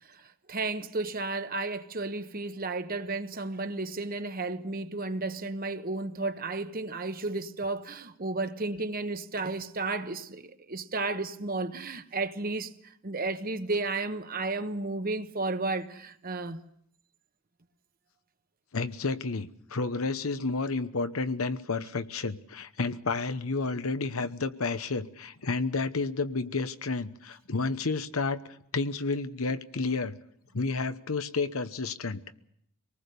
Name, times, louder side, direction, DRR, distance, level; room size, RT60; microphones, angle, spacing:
voice 1, 0.1-16.6, right 3 dB, 45° right, 1.1 m, -33 dB
voice 2, 18.7-28.4 28.7-30.1 30.5-32.2, left 3 dB, 80° left, 1.0 m, -31 dB
24.5 x 19.5 x 6.8 m
head